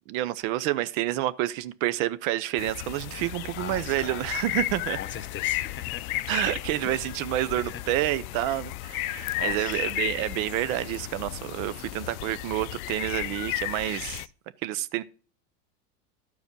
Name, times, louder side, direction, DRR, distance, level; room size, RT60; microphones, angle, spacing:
voice 1, 0.1-5.0 6.3-14.2 14.6-15.0, right 14 dB, 60° right, 0.8 m, -29 dB
sound 1, 2.6-14.3, left 17 dB, 65° left, 0.6 m, -34 dB
voice 2, 3.5-4.2 5.0-6.3 6.8-7.0 7.6-7.8 9.3-9.9, left 8 dB, 25° left, 0.9 m, -40 dB
12.5 x 4.9 x 5.4 m
hypercardioid pair, 105°, 46 cm